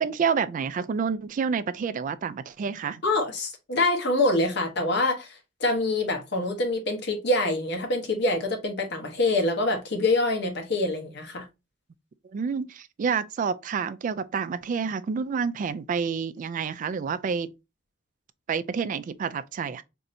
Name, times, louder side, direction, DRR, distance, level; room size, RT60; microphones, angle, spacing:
voice 1, 0.0-3.0 12.2-17.5 18.5-19.8, right 6 dB, 45° right, 0.3 m, -28 dB
voice 2, 3.0-11.5, left 2 dB, 60° left, 0.9 m, -25 dB
4.3 x 2.7 x 2.5 m
head